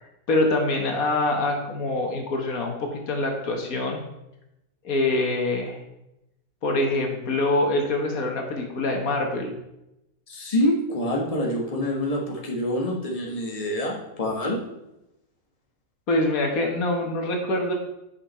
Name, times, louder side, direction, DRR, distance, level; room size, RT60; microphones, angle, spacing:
voice 1, 0.3-4.0 4.8-5.8 6.6-9.5 16.1-17.7, left 2 dB, 75° left, 2 dB, 1.8 m, -25 dB
voice 2, 10.3-14.6, left 1 dB, 25° left, -1 dB, 1.6 m, -26 dB
9.7 x 5.5 x 4.3 m, 0.88 s
omnidirectional pair, 1.5 m